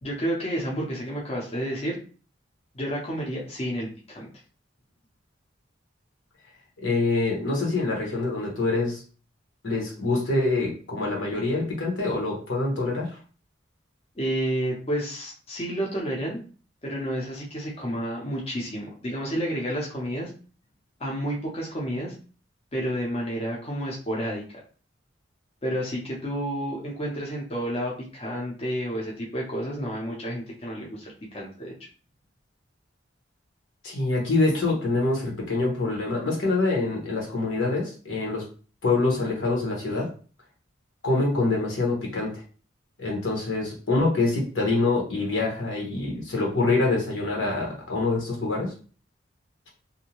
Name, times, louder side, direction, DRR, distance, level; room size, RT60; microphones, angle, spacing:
voice 1, 0.0-2.0 2.7-4.3 14.2-16.4 16.8-20.3 21.0-22.1 22.7-24.6 25.6-31.7, equal, 30° left, -3 dB, 0.6 m, -30 dB
voice 2, 6.8-9.0 9.6-13.1 33.8-38.5 38.8-40.1 41.0-42.3 43.0-48.7, left 3 dB, 85° left, -1 dB, 1.0 m, -25 dB
2.6 x 2.1 x 2.9 m, 0.38 s
head